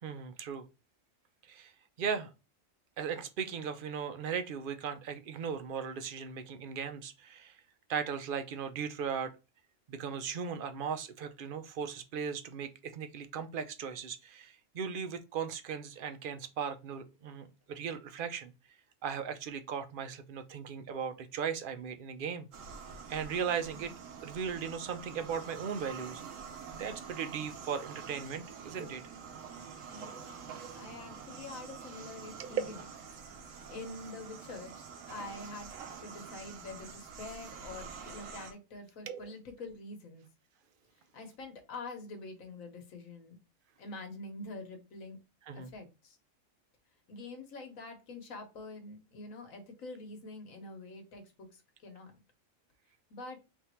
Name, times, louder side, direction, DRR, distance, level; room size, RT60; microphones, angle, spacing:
voice 1, 0.0-0.7 1.5-1.7 2.0-2.3 3.0-7.6 7.9-9.3 9.9-18.5 19.0-22.5 23.1-23.9 24.2-26.2 26.7-29.0 32.4-32.6 39.1-39.3 45.5-45.7, right 7 dB, 55° right, 8 dB, 0.6 m, -37 dB
sound 1, 22.5-38.5, right 6 dB, 75° right, 1.1 m, -47 dB
voice 2, 29.9-30.5 30.7-32.8 33.7-34.7 35.1-40.3 41.1-43.4 43.8-45.2 45.5-46.2 47.1-52.2 53.1-53.4, left 3 dB, 85° left, 5 dB, 1.4 m, -46 dB
3.6 x 2.6 x 4.3 m, 0.27 s
omnidirectional pair, 1.4 m